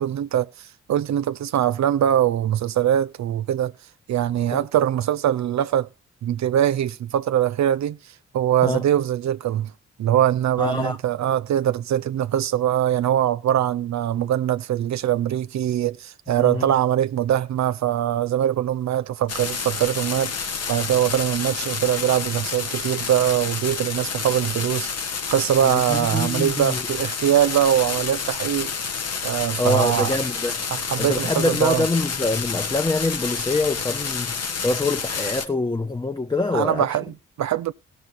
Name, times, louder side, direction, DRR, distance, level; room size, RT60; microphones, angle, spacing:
voice 1, 0.0-3.7 4.1-5.9 6.2-8.0 8.3-9.7 10.0-28.7 29.2-30.1 30.7-31.9 36.5-37.7, right 11 dB, 65° right, 0.5 m, -22 dB
voice 2, 10.6-11.0 16.4-16.7 25.6-26.8 29.6-30.6 31.0-37.0, left 2 dB, 15° left, 0.6 m, -25 dB
sound 1, 19.3-35.5, left 5 dB, 55° left, 1.1 m, -29 dB
16.0 x 6.8 x 4.1 m
supercardioid pair, 55°, 30 cm